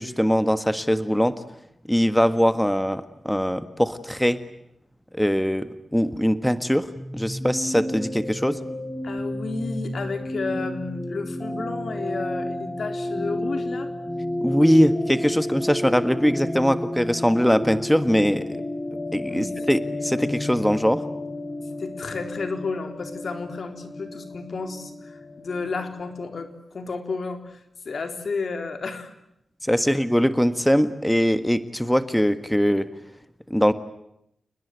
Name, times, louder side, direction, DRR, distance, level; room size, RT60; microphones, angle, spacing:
voice 1, 0.0-1.3 1.9-4.4 5.1-6.9 7.1-8.6 14.4-18.6 19.1-21.0 29.6-32.9 33.5-33.7, equal, 5° left, 11 dB, 1.6 m, -21 dB
sound 1, 7.0-26.5, left 1 dB, 20° left, 6.8 m, -31 dB
voice 2, 9.0-13.9 19.3-19.5 21.8-27.6 27.9-29.1, left 4 dB, 65° left, 7 dB, 3.9 m, -32 dB
29.5 x 20.5 x 9.5 m, 0.79 s
cardioid pair, 60°, 0 cm